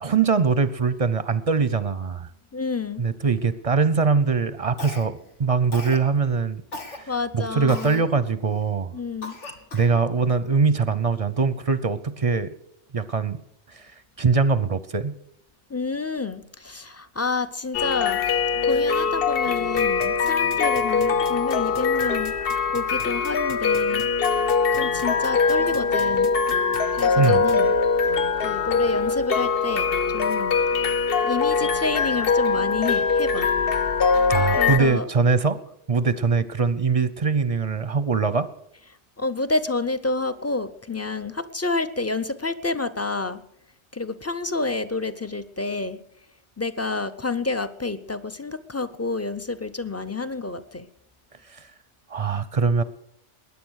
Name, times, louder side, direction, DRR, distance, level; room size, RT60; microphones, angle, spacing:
voice 1, 0.0-2.3 3.0-6.6 6.9-9.0 9.7-12.5 12.9-13.4 13.7-13.9 14.2-15.1 27.2-27.4 28.6-28.7 34.3-35.6 35.9-38.5 51.5-51.7 52.1-52.8, right 5 dB, 35° right, 15 dB, 0.6 m, -22 dB
voice 2, 2.5-3.0 7.1-8.0 8.9-9.4 15.7-18.2 18.6-22.3 22.7-24.1 24.7-26.3 27.0-27.7 28.4-30.6 31.2-33.5 34.5-35.1 39.2-43.4 43.9-46.0 46.6-50.9, left 3 dB, 20° left, 12 dB, 0.4 m, -29 dB
Cough, 4.8-5.3 5.7-6.1 6.7-7.0 7.7-8.0 8.6-8.7 9.2-10.0, left 2 dB, 85° left, 2.3 m, -37 dB
sound 1, 17.7-34.8, left 5 dB, 60° left, 0.9 m, -22 dB
sound 2, 19.8-27.5, left 3 dB, 40° left, 1.3 m, -41 dB
20.5 x 9.9 x 6.4 m, 0.75 s
omnidirectional pair, 1.2 m